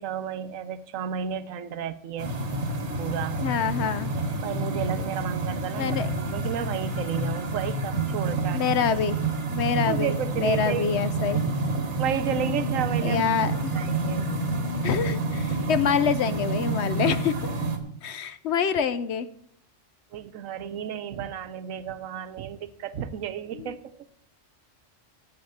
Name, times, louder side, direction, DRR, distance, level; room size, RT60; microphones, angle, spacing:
voice 1, 0.0-2.3 3.0-3.4 4.4-8.6 9.8-11.0 12.0-13.2 13.7-14.4 20.1-24.0, right 8 dB, 80° right, 13 dB, 1.1 m, -32 dB
sound 1, 2.2-17.8, right 3 dB, 60° right, 1.7 m, -29 dB
voice 2, 3.4-4.1 5.8-6.1 8.5-9.2 9.5-11.4 13.0-13.8 14.8-17.4 18.0-19.3 23.5-23.7, left 6 dB, 65° left, 13 dB, 0.9 m, -26 dB
sound 2, 12.2-17.2, left 5 dB, 35° left, 1.5 m, -35 dB
8.6 x 8.0 x 7.8 m, 0.71 s
omnidirectional pair, 1.3 m